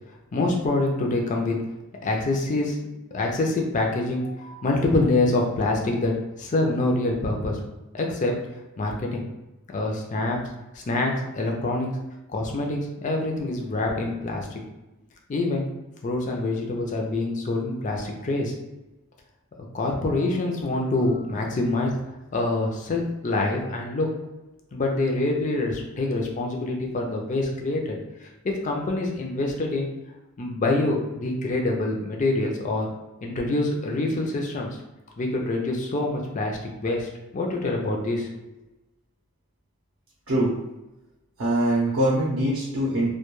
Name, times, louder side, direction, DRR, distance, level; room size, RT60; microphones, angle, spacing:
voice 1, 0.3-1.6 2.0-2.8 3.1-7.6 7.9-8.4 8.8-9.2 9.7-10.4 10.7-11.9 12.3-14.6 15.3-15.6 16.0-18.5 19.7-21.9 22.3-24.2 24.7-29.9 30.4-32.9 33.2-34.7 35.2-38.3, left 2 dB, 35° left, 0 dB, 0.4 m, -26 dB
voice 2, 41.4-43.1, right 1 dB, 65° right, -6 dB, 0.6 m, -23 dB
2.2 x 2.2 x 3.0 m, 0.99 s
head